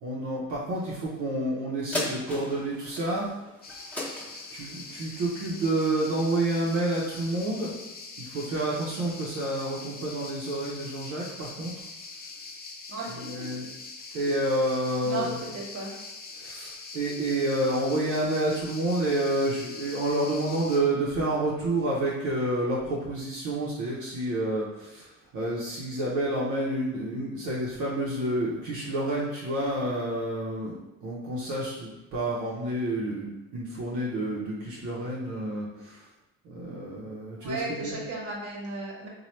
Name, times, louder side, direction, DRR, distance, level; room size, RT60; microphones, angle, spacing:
voice 1, 0.0-3.3 4.5-7.8 8.2-11.7 13.1-13.7 14.1-15.4 16.3-36.1 36.4-37.9, right 1 dB, 85° right, -5 dB, 0.7 m, -29 dB
sound 1, 1.9-6.7 7.2-7.3, left 1 dB, 5° left, 0.8 m, -37 dB
sound 2, 3.6-20.8, left 3 dB, 30° left, 0.5 m, -43 dB
voice 2, 12.9-13.5 14.1-14.2 15.0-15.3 15.5-15.9 37.4-39.1, right 3 dB, 55° right, -3 dB, 1.3 m, -35 dB
3.0 x 2.2 x 4.2 m, 0.99 s
cardioid pair, 90°, 30 cm